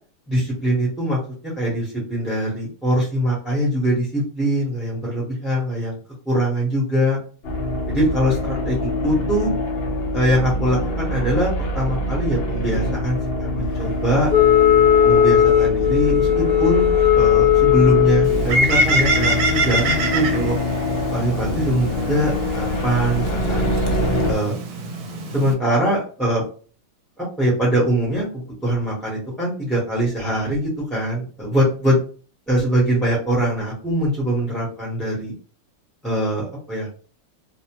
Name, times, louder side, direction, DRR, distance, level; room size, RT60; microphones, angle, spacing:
voice 1, 0.3-1.2 1.6-6.0 6.3-7.2 7.9-9.5 10.1-11.5 11.7-14.3 15.0-20.6 21.1-23.7 24.3-24.6 25.3-26.4 27.2-32.0 32.5-35.3 36.0-36.9, equal, ahead, -5 dB, 0.7 m, -22 dB
sound 1, 7.4-24.3, left 1 dB, 55° left, 0.7 m, -24 dB
Wind instrument woodwind instrument, 14.3-18.4, left 11 dB, 75° left, 1.0 m, -16 dB
Bird, 18.2-25.5, right 2 dB, 75° right, 1.0 m, -25 dB
2.7 x 2.0 x 2.9 m, 0.39 s
omnidirectional pair, 1.6 m